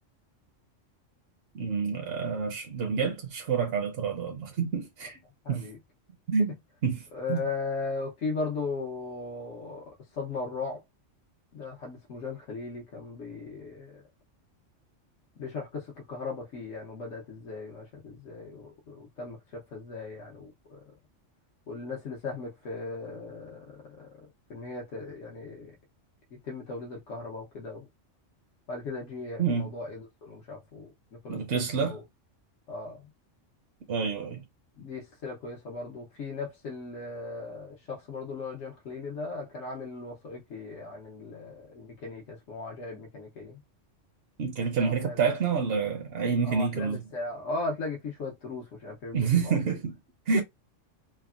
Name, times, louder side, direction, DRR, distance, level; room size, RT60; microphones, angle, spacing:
voice 1, 1.5-5.2 5.5-5.7 6.3-6.5 6.8-7.4 29.4-29.7 31.3-32.0 33.9-34.4 44.4-47.0 49.1-50.0 50.3-50.4, right 5 dB, 60° right, 0.7 m, -28 dB
voice 2, 5.4-5.8 7.1-10.8 11.5-14.0 15.4-20.8 21.7-25.7 26.4-27.8 28.7-32.0 32.7-33.1 34.8-43.6 44.8-45.2 46.4-49.6 50.3-50.4, left 3 dB, 75° left, 1.2 m, -37 dB
3.4 x 2.1 x 2.3 m
omnidirectional pair, 1.3 m